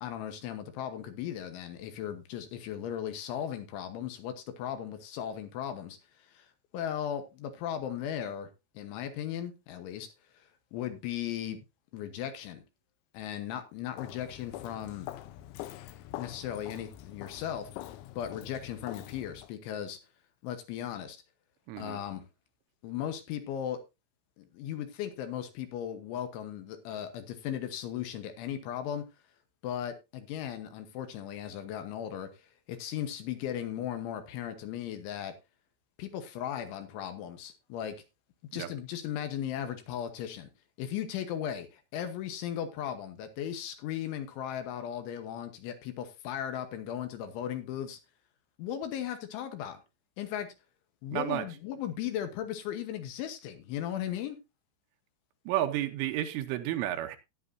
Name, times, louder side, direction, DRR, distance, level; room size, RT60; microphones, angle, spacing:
voice 1, 0.0-6.5 6.7-8.5 8.8-10.1 10.3-11.6 11.9-12.6 13.1-15.1 16.1-20.0 20.4-21.2 21.8-22.3 22.8-23.8 24.4-29.0 29.6-35.3 36.0-38.0 38.5-40.5 40.8-48.0 48.6-49.8 50.2-50.5 51.0-54.4, left 10 dB, 75° left, 3.3 m, -37 dB
Walk footsteps, 14.0-19.5, left 14 dB, 90° left, 3.5 m, -44 dB
voice 2, 21.7-22.0 38.5-38.7 51.1-51.5 55.5-57.2, right 13 dB, 80° right, 3.2 m, -31 dB
13.5 x 10.5 x 2.7 m
omnidirectional pair, 5.9 m